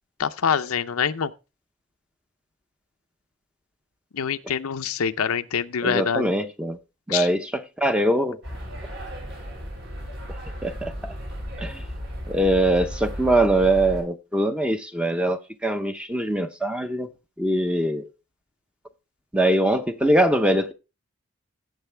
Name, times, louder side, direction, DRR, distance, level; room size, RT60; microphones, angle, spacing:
voice 1, 0.2-1.3 4.1-6.3 7.1-7.3, left 7 dB, 85° left, 0.6 m, -25 dB
voice 2, 5.8-6.8 7.1-8.4 10.3-11.1 11.6-11.8 12.3-17.1 17.4-18.1 19.3-20.7, right 1 dB, 5° right, 0.7 m, -23 dB
sound 1, 8.4-14.0, equal, 55° right, 6.1 m, -35 dB
15.5 x 6.7 x 3.3 m
head